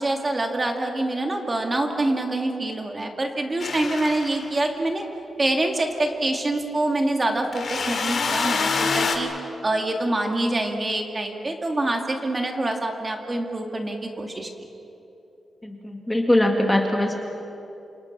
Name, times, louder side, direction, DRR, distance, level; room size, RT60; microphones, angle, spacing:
voice 1, 0.0-5.0 5.4-9.3 9.6-14.5, right 2 dB, 20° right, 3 dB, 2.3 m, -25 dB
sound 1, 3.6-4.6 7.5-9.2, left 5 dB, 55° left, 2.6 m, -26 dB
voice 2, 15.6-17.2, left 1 dB, 10° left, 2 dB, 2.0 m, -21 dB
28.0 x 27.5 x 6.1 m, 2.9 s
wide cardioid pair, 145°, 0 cm